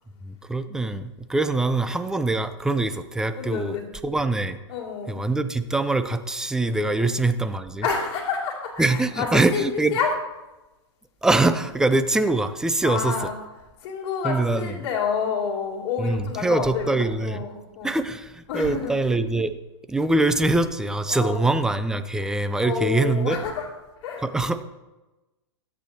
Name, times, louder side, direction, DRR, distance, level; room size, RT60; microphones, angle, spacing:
voice 1, 0.2-3.8 4.0-4.6 5.1-7.8 8.8-10.0 11.2-13.2 14.2-14.7 16.0-17.4 17.8-19.6 19.9-23.4 24.2-24.6, right 2 dB, 5° right, 11 dB, 0.5 m, -23 dB
voice 2, 3.4-3.9 4.7-5.2 6.9-7.1 7.8-9.6 9.9-10.1 12.8-13.3 13.8-18.0 18.5-18.9 21.1-21.4 22.6-23.7 24.0-24.3, left 6 dB, 45° left, -6 dB, 2.7 m, -29 dB
13.5 x 8.4 x 2.8 m, 1.1 s
hypercardioid pair, 125°, 15 cm